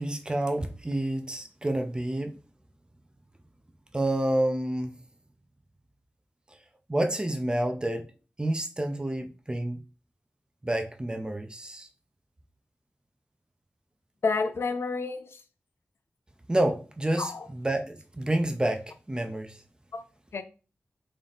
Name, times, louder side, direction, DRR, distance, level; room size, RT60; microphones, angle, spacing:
voice 1, 0.0-2.4 3.9-5.0 6.9-8.1 8.4-9.8 10.6-11.9 16.5-19.6, right 1 dB, 20° right, 0.5 m, -29 dB
voice 2, 14.2-15.4 17.2-17.5 19.9-20.0 20.3-20.4, left 4 dB, 75° left, 0.5 m, -29 dB
3.9 x 2.7 x 3.5 m
wide cardioid pair, 85°, 4 cm